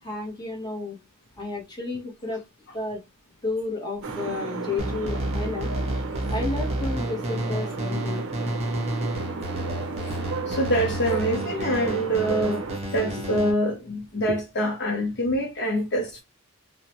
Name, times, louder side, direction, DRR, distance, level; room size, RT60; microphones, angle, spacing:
voice 1, 0.0-1.0 1.4-2.4 2.7-3.0 3.4-5.7 6.3-8.2, left 3 dB, 20° left, 1.0 m, -32 dB
sound 1, 4.0-12.8, right 4 dB, 60° right, 0.6 m, -33 dB
sound 2, 4.8-13.5, right 1 dB, 30° right, 0.9 m, -31 dB
voice 2, 10.0-16.2, equal, 50° left, 0.6 m, -26 dB
2.8 x 2.1 x 2.8 m
head